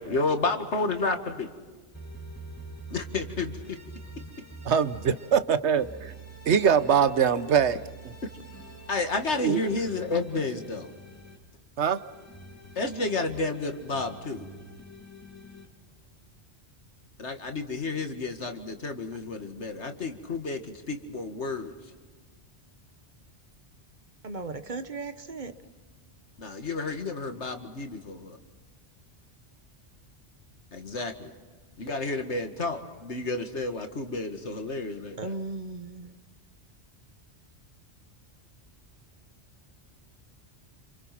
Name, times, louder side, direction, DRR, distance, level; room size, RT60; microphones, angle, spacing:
voice 1, 0.0-1.5 2.9-3.8 8.9-10.9 12.8-14.5 17.2-21.7 26.4-28.4 30.7-31.3 31.8-35.3, left 3 dB, 85° left, 2.3 m, -31 dB
sound 1, 1.9-5.4 5.8-11.4 11.8-15.7, right 2 dB, 15° left, 2.8 m, -46 dB
voice 2, 4.7-6.1 6.5-7.8 9.4-9.6 11.8-12.0, right 7 dB, 80° right, 1.2 m, -23 dB
voice 3, 24.2-25.5 35.2-36.1, right 3 dB, 45° right, 1.3 m, -36 dB
28.0 x 27.0 x 6.0 m
omnidirectional pair, 1.1 m